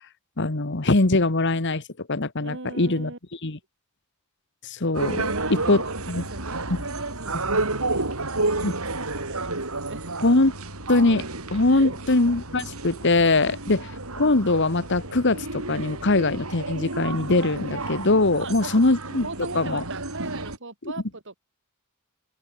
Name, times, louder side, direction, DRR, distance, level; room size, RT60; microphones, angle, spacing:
voice 1, 0.4-1.8 2.1-3.1 3.4-3.6 4.6-5.3 5.7-5.8 6.1-6.2 8.6-8.7 10.2-10.5 10.9-11.3 11.5-13.9 14.2-19.3 19.5-19.8, left 2 dB, 55° left, 1.5 m, -22 dB
voice 2, 2.4-3.2 5.2-10.2 11.7-12.0 13.5-13.6 18.4-18.8 19.2-21.4, right 3 dB, 55° right, 3.3 m, -39 dB
sound 1, 4.9-20.6, right 2 dB, 80° right, 6.1 m, -31 dB
head